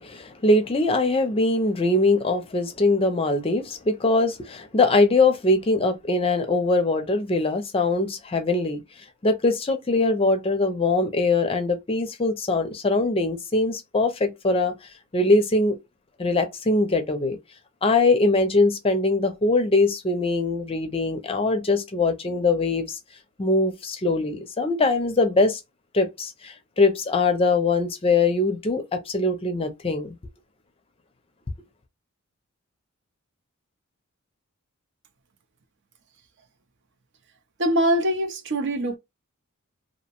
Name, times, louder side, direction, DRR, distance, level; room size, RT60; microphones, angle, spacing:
voice 1, 0.0-8.8 9.2-14.7 15.1-15.8 16.2-17.4 17.8-23.0 23.4-25.6 25.9-30.2, left 2 dB, 25° left, 0.5 m, -22 dB
voice 2, 37.6-39.0, right 1 dB, 55° right, 0.5 m, -23 dB
2.7 x 2.0 x 2.8 m
head